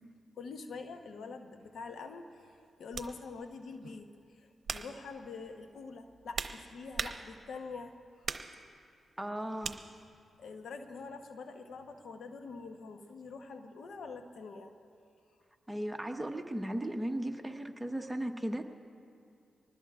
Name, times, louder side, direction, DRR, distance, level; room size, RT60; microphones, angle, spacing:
voice 1, 0.4-2.5 2.8-8.3 10.4-14.7, left 4 dB, 80° left, 6 dB, 1.0 m, -45 dB
sound 1, 1.6-1.8 2.9-3.2 3.8-4.1 4.6-5.0 5.9-7.6 8.2-8.6 9.6-9.8, right 5 dB, 65° right, 0.8 m, -39 dB
voice 2, 9.2-9.8 15.7-18.6, right 1 dB, 10° right, 4 dB, 1.2 m, -36 dB
25.0 x 19.5 x 2.5 m, 2.4 s
supercardioid pair, 50°, 0 cm